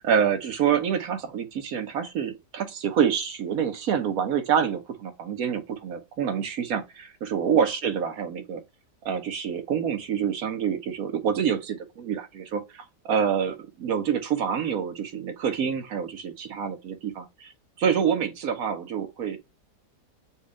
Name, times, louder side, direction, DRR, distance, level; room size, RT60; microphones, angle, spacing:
voice 1, 0.0-8.6 9.0-17.5 17.8-19.4, right 7 dB, 65° right, 1.2 m, -27 dB
4.3 x 2.4 x 4.8 m
omnidirectional pair, 1.8 m